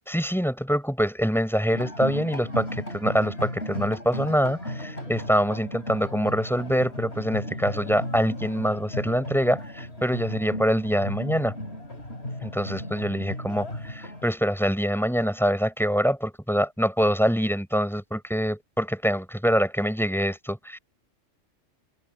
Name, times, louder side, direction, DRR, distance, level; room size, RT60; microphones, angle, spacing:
voice 1, 0.1-11.6 12.4-20.8, equal, ahead, 5.7 m, -25 dB
sound 1, 1.7-14.3, left 1 dB, 55° left, 7.4 m, -35 dB
omnidirectional pair, 1.3 m